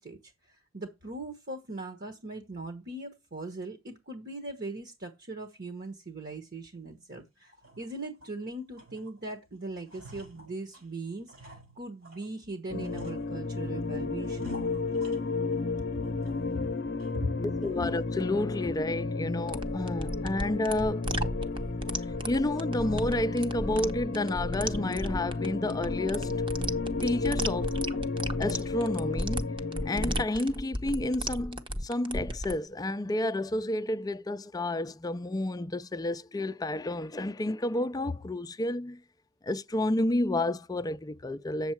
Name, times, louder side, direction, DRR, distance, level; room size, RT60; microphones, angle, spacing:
voice 1, 0.0-14.6 16.0-16.1 16.5-16.6 17.1-17.3, right 2 dB, 45° right, 1.2 m, -40 dB
sound 1, 6.3-6.4 6.9-7.0 7.4-8.4 8.7-9.4 9.6-12.3 12.8-13.7 14.2-15.7 16.0-16.6 17.0-17.1 17.6-18.0, equal, 80° right, 4.7 m, -51 dB
sound 2, 12.7-30.3, left 3 dB, 50° left, 0.7 m, -33 dB
voice 2, 17.6-21.0 22.3-26.4 27.0-27.8 28.4-29.6 29.9-39.0 39.4-41.7, left 1 dB, 20° left, 0.4 m, -30 dB
sound 3, 19.5-32.5, right 1 dB, 25° right, 0.8 m, -35 dB
8.3 x 7.2 x 4.6 m
head